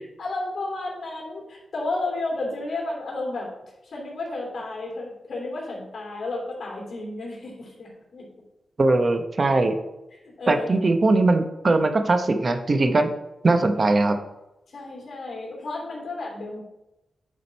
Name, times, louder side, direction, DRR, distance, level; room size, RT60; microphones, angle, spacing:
voice 1, 0.2-3.5 3.8-8.3 10.1-10.8 14.7-16.6, left 2 dB, 60° left, -2 dB, 3.1 m, -32 dB
voice 2, 8.8-9.8 10.5-13.1 13.4-14.2, right 2 dB, 40° right, 7 dB, 0.9 m, -20 dB
9.9 x 5.1 x 4.1 m, 0.94 s
wide cardioid pair, 90°, 0 cm